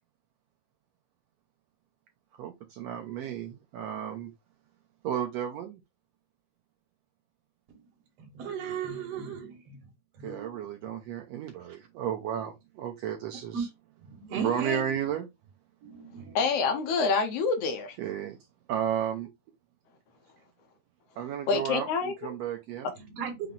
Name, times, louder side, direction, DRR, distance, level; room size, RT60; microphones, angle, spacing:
voice 1, 2.4-4.3 5.0-5.8 10.2-13.7 14.3-15.3 18.0-18.4 18.7-19.3 21.2-22.9, right 9 dB, 80° right, 1.5 m, -33 dB
voice 2, 8.2-9.8 10.1-10.6 13.5-13.7 14.0-14.8 15.8-16.4 23.0-23.5, right 6 dB, 65° right, 2.0 m, -36 dB
voice 3, 16.3-18.0 21.5-22.3, left 4 dB, 70° left, 1.6 m, -27 dB
5.7 x 2.0 x 3.7 m
omnidirectional pair, 3.4 m